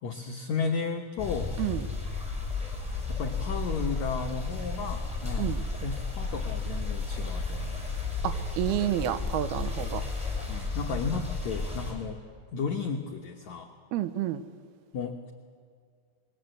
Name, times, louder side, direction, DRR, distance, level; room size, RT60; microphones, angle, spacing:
voice 1, 0.0-1.6 3.1-7.8 10.5-12.2 12.5-13.7 14.9-15.3, left 5 dB, 65° left, 2 dB, 2.0 m, -34 dB
sound 1, 1.2-11.9, left 3 dB, ahead, 5.9 m, -33 dB
voice 2, 8.2-10.0 13.9-14.4, right 12 dB, 80° right, 11 dB, 2.7 m, -29 dB
27.5 x 21.5 x 7.9 m, 2.1 s
omnidirectional pair, 4.6 m